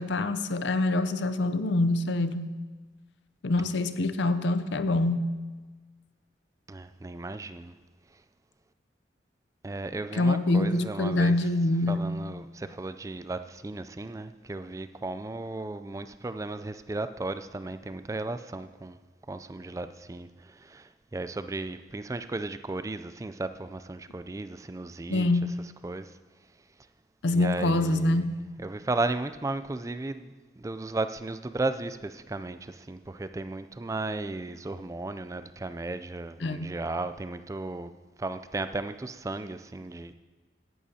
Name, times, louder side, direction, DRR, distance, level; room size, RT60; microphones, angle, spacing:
voice 1, 0.0-2.5 3.4-5.3 10.1-12.1 25.1-25.5 27.2-28.2 36.4-36.7, left 2 dB, 80° left, 11 dB, 0.6 m, -25 dB
voice 2, 6.7-7.7 9.6-11.4 11.9-19.0 19.3-25.3 25.8-26.2 27.3-28.3 28.6-37.9 38.2-40.1, right 2 dB, 15° right, 11 dB, 0.3 m, -35 dB
17.0 x 11.0 x 2.8 m, 1.4 s
head